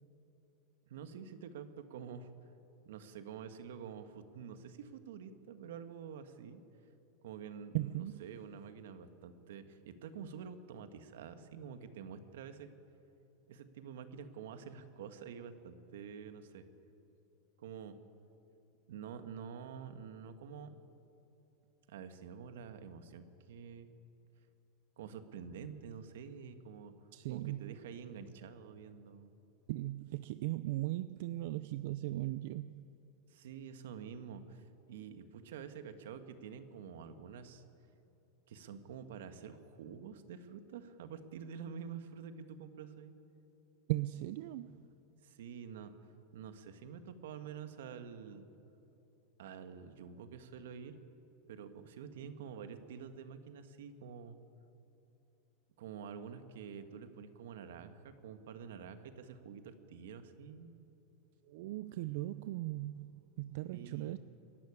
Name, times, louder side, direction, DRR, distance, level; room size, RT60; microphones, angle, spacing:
voice 1, 0.9-2.3 2.8-6.6 7.2-12.7 13.5-16.6 17.6-18.0 18.9-20.7 21.9-23.9 25.0-26.9 27.3-29.3 33.3-37.6 38.5-43.1 45.2-45.9 46.3-48.5 49.4-51.0 51.5-54.4 55.8-60.7 63.7-64.2, right 7 dB, 85° right, 9 dB, 1.6 m, -48 dB
voice 2, 7.7-8.3 27.1-27.8 29.7-32.9 43.9-44.8 52.7-52.8 61.4-64.2, right 17 dB, 60° right, 13 dB, 0.5 m, -38 dB
22.5 x 14.0 x 9.9 m, 2.8 s
supercardioid pair, 160°, 0 cm